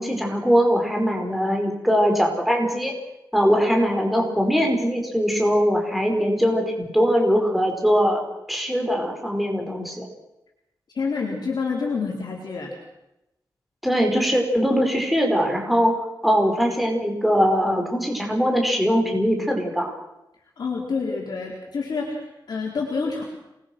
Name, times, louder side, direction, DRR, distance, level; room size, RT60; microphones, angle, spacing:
voice 1, 0.0-2.9 3.3-8.2 8.5-10.0 13.8-19.9, equal, ahead, 1 dB, 5.0 m, -21 dB
voice 2, 10.9-12.7 20.6-23.2, left 4 dB, 60° left, -1 dB, 4.1 m, -28 dB
28.0 x 21.5 x 6.3 m, 0.89 s
wide cardioid pair, 140°, 8 cm